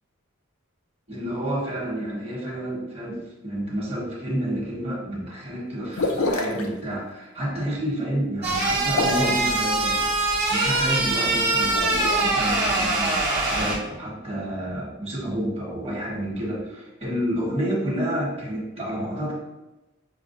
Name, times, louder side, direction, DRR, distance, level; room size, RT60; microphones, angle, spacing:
voice 1, 1.1-13.2 13.5-19.3, equal, 30° right, -5 dB, 1.3 m, -29 dB
sound 1, 5.9-6.7 8.8-9.5 11.6-12.2, left 2 dB, 75° left, 0.5 m, -26 dB
sound 2, 8.4-13.8, right 2 dB, 50° right, 1.1 m, -23 dB
6.5 x 2.2 x 2.5 m, 1.1 s
head